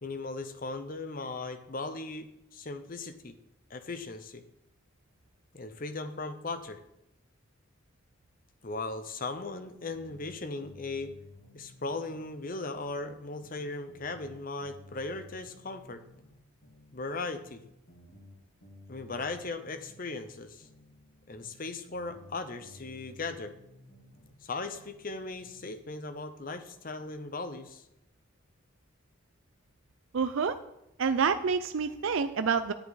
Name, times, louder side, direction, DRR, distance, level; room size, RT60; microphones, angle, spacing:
voice 1, 0.0-3.3 3.7-4.4 5.5-6.8 8.6-11.1 11.5-16.0 16.9-17.6 18.9-20.7 21.3-23.5 24.4-27.8, left 3 dB, 40° left, 9 dB, 0.7 m, -38 dB
sound 1, 9.9-12.4 12.6-16.4 16.6-20.4 20.6-24.4 24.6-25.7, left 1 dB, 85° left, 3.9 m, -55 dB
voice 2, 30.1-30.6 31.0-32.7, right 5 dB, 70° right, 10 dB, 0.5 m, -27 dB
10.0 x 10.0 x 4.1 m, 0.83 s
head